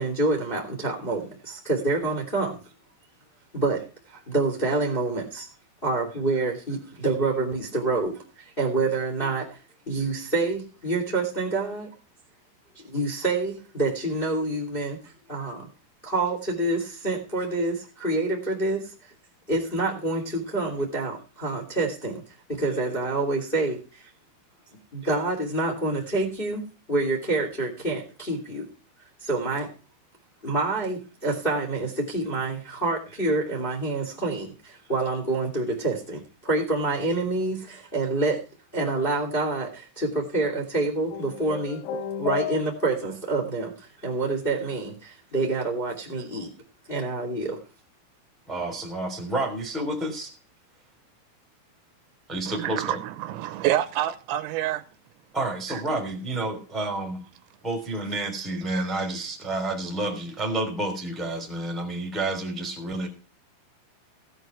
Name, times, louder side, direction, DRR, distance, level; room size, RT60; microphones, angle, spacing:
voice 1, 0.0-2.6 3.5-3.8 4.3-5.5 5.8-9.5 9.9-11.9 12.8-15.0 15.3-15.7 16.0-18.9 19.5-22.2 22.5-24.1 24.9-26.6 26.9-28.7 29.2-29.7 30.4-38.4 38.7-41.8 42.2-46.5 46.9-47.6, right 2 dB, 15° left, 2.0 m, -27 dB
sound 1, 41.1-43.2, left 8 dB, 90° left, 4.1 m, -33 dB
voice 2, 48.5-50.3 52.3-53.0 55.3-57.2 57.6-63.1, right 2 dB, ahead, 2.2 m, -29 dB
voice 3, 52.5-54.8 55.7-55.8 58.7-58.8, right 13 dB, 85° right, 3.7 m, -28 dB
17.0 x 8.1 x 4.6 m
omnidirectional pair, 6.0 m